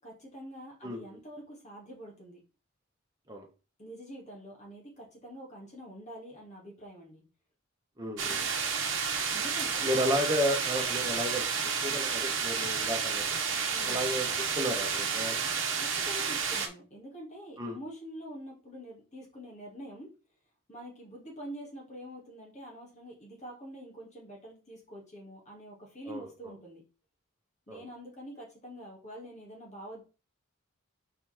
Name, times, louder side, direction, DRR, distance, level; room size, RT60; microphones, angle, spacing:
voice 1, 0.0-2.4 3.8-7.2 8.2-8.4 9.3-9.9 13.7-14.0 15.8-20.1 20.7-26.8 27.7-30.0, equal, 35° left, -2 dB, 2.2 m, -46 dB
voice 2, 0.8-1.2 3.3-3.5 8.0-8.4 9.8-11.4 11.8-13.4 13.8-15.4 17.6-17.8 26.0-26.5 27.7-27.9, equal, 20° right, 1 dB, 1.4 m, -33 dB
sound 1, 8.2-16.7, right 6 dB, 60° right, 1.1 m, -31 dB
4.9 x 4.3 x 4.3 m, 0.33 s
head